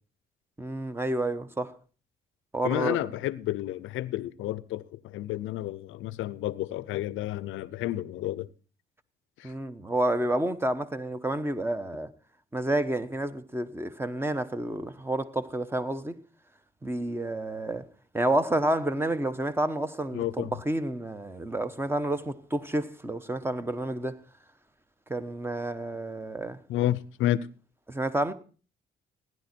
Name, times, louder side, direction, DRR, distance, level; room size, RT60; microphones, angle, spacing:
voice 1, 0.6-1.7 2.5-3.0 9.4-12.1 12.5-16.2 16.8-17.8 18.1-24.1 25.1-26.6 27.9-28.3, right 1 dB, 10° right, 1.2 m, -29 dB
voice 2, 2.6-8.5 9.4-9.5 20.1-20.5 26.7-27.5, left 13 dB, 85° left, 0.7 m, -31 dB
15.5 x 11.0 x 4.5 m
cardioid pair, 90°, 20 cm